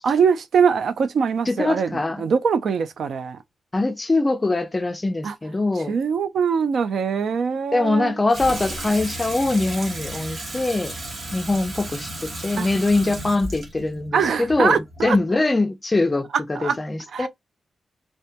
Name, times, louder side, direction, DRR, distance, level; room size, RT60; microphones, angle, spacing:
voice 1, 0.0-1.9 2.2-3.4 5.2-5.3 5.9-8.1 12.6-12.7 14.1-15.2 16.5-16.8 17.1-17.3, right 6 dB, 75° right, 0.3 m, -22 dB
voice 2, 1.5-2.2 3.7-5.9 7.7-10.9 11.3-17.3, left 2 dB, 20° left, 0.3 m, -23 dB
Water tap faucet / Sink (filling or washing), 8.3-15.3, right 1 dB, 35° right, 0.7 m, -34 dB
2.2 x 2.1 x 2.6 m
wide cardioid pair, 175°, 0 cm